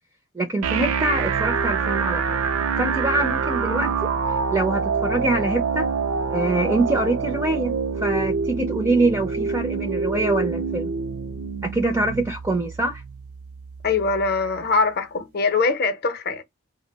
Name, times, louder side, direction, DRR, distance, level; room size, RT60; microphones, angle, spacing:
voice 1, 0.3-2.4 2.8-3.9 4.5-5.9 6.3-10.9 11.6-13.0, right 2 dB, 15° right, 0.4 m, -24 dB
sound 1, 0.6-14.6, right 5 dB, 85° right, 0.4 m, -26 dB
voice 2, 13.8-16.4, left 4 dB, 45° left, 0.6 m, -22 dB
2.2 x 2.0 x 3.3 m
head